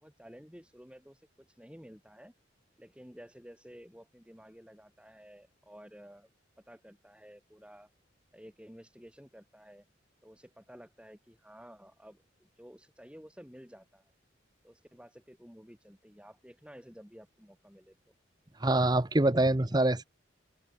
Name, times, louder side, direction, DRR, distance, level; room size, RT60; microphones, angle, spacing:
voice 1, 0.0-2.3 2.8-6.3 6.7-7.9 8.3-9.9 10.2-14.0 14.6-18.0, equal, 5° right, 7.5 m, -53 dB
voice 2, 18.6-20.0, right 1 dB, 20° right, 0.9 m, -25 dB
head